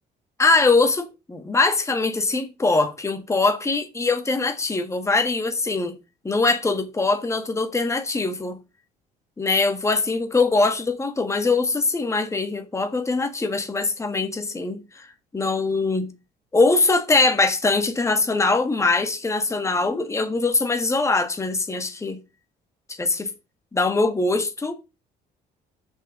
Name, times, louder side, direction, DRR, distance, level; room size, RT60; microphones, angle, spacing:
voice 1, 0.4-5.9 6.2-8.6 9.4-15.1 15.3-16.1 16.5-22.2 23.0-23.3 23.7-24.7, left 3 dB, 15° left, 1.6 m, -22 dB
6.8 x 5.7 x 6.4 m
cardioid pair, 110°, 17 cm